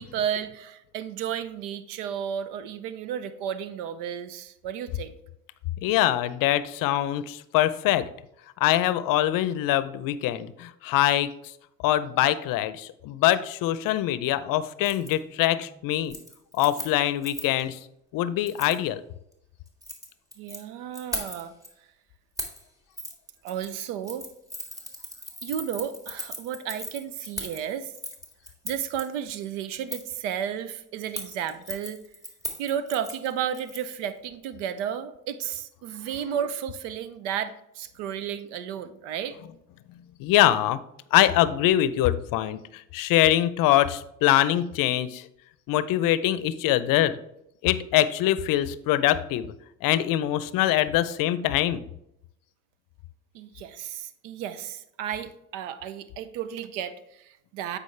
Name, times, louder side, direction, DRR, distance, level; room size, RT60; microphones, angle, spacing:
voice 1, 0.0-5.2 20.4-21.5 23.4-24.3 25.4-27.9 28.6-32.0 32.6-39.4 53.3-57.8, right 9 dB, 85° right, 12 dB, 0.7 m, -33 dB
voice 2, 5.8-8.1 8.6-11.5 11.8-16.1 16.5-17.8 18.1-19.0 40.2-40.8 41.1-45.3 45.7-47.2 47.6-49.5 49.8-51.8, left 13 dB, 65° left, 15 dB, 0.6 m, -23 dB
Keys jangling, 14.8-15.1 15.5-15.8 16.0-17.6 18.5-18.8 19.7-20.6 20.9-21.7 22.4-22.6 23.0-23.1 23.5-29.0 29.9-30.2 31.0-34.1 34.3-34.4, left 1 dB, 10° right, 1.7 m, -38 dB
8.3 x 4.9 x 3.2 m, 0.81 s
supercardioid pair, 75°, 36 cm